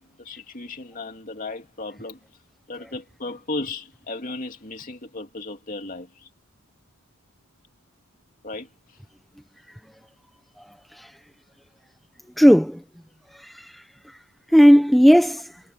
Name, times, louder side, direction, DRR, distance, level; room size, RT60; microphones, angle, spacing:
voice 1, 0.0-2.2 2.7-6.3 8.4-8.7, left 2 dB, 35° left, 2.9 m, -35 dB
voice 2, 12.4-12.8 13.3-14.2 14.5-15.6, equal, ahead, 0.9 m, -16 dB
head